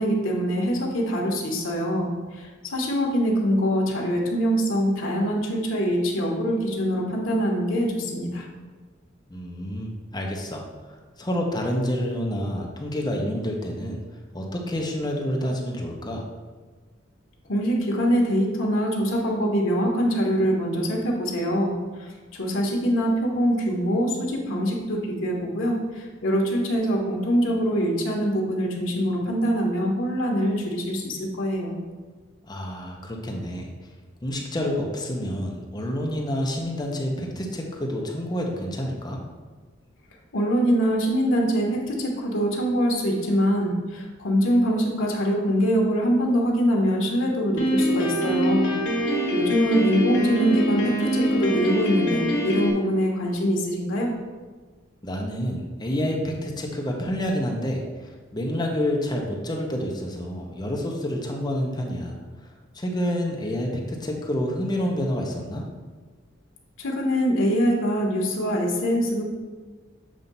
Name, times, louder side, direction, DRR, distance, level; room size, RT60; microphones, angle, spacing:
voice 1, 0.0-8.4 17.5-21.7 22.0-22.1 22.4-31.8 40.3-48.7 49.0-54.1 66.8-69.2, equal, 80° left, -1 dB, 1.1 m, -24 dB
voice 2, 9.3-14.0 14.3-16.2 32.4-33.7 34.2-39.2 55.0-62.1 62.4-65.6, equal, 20° left, 0 dB, 0.8 m, -28 dB
Piano, 47.6-52.7, equal, 60° left, 1.5 m, -24 dB
7.5 x 2.7 x 5.3 m, 1.4 s
head